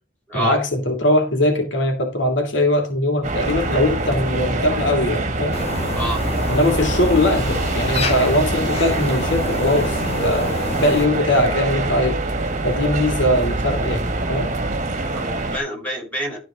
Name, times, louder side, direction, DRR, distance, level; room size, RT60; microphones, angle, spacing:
voice 1, 0.3-5.6 6.5-12.2 12.6-14.5, left 1 dB, 80° left, 4 dB, 2.6 m, -21 dB
sound 1, 3.2-15.6, right 2 dB, 40° right, 1.7 m, -24 dB
sound 2, 5.5-11.1, left 2 dB, 35° left, 1.8 m, -28 dB
voice 2, 15.0-16.4, right 1 dB, 10° left, -2 dB, 6.2 m, -27 dB
13.0 x 4.6 x 5.0 m, 0.32 s
head